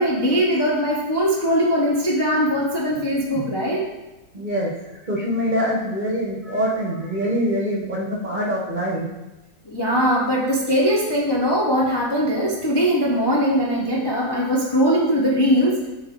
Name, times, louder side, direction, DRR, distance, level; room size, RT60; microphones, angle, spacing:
voice 1, 0.0-3.8 9.6-15.9, equal, 25° left, -4 dB, 0.6 m, -20 dB
voice 2, 4.3-4.8 5.0-9.1, equal, 35° right, -3 dB, 0.9 m, -24 dB
6.9 x 3.8 x 3.8 m, 1.0 s
omnidirectional pair, 1.7 m